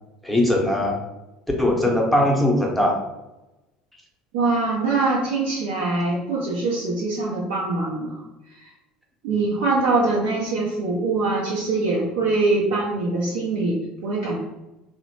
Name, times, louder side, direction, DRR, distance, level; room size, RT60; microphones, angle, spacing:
voice 1, 0.2-1.0 1.6-3.0, left 1 dB, ahead, -1 dB, 0.7 m, -20 dB
voice 2, 4.3-8.2 8.5-8.7 9.2-14.4, right 3 dB, 65° right, -5 dB, 0.5 m, -23 dB
2.8 x 2.1 x 2.9 m, 0.98 s
figure-of-eight pair, 65°, 4 cm